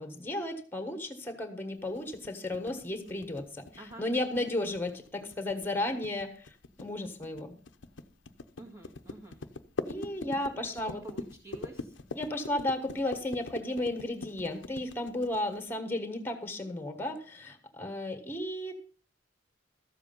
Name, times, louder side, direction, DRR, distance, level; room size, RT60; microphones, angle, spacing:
voice 1, 0.0-3.6 4.0-6.5 6.8-7.5 9.8-11.0 12.1-18.7, left 1 dB, 10° left, 8 dB, 1.4 m, -34 dB
sound 1, 2.0-15.7, left 3 dB, 75° left, 0.7 m, -42 dB
voice 2, 8.6-9.4 10.8-11.9, right 2 dB, 20° right, -4 dB, 1.8 m, -48 dB
13.5 x 7.4 x 5.3 m, 0.42 s
head